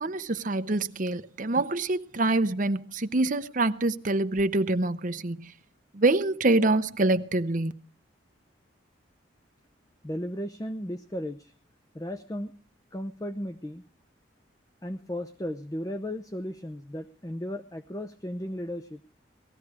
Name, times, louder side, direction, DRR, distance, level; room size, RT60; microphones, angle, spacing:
voice 1, 0.0-5.5 5.9-7.7, right 2 dB, 45° right, 0.8 m, -25 dB
voice 2, 10.0-11.5 11.9-12.5 12.9-13.8 14.8-19.0, equal, 20° left, 0.7 m, -35 dB
19.0 x 14.5 x 4.8 m
head